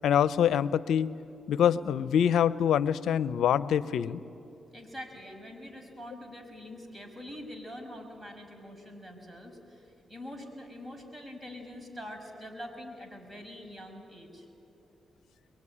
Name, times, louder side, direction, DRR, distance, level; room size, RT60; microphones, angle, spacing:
voice 1, 0.0-1.1 1.5-4.2, left 9 dB, 85° left, 16 dB, 0.6 m, -25 dB
voice 2, 4.7-14.5, left 1 dB, 20° right, 3 dB, 5.9 m, -44 dB
23.0 x 22.5 x 9.8 m, 2.7 s
cardioid pair, 65°, 0 cm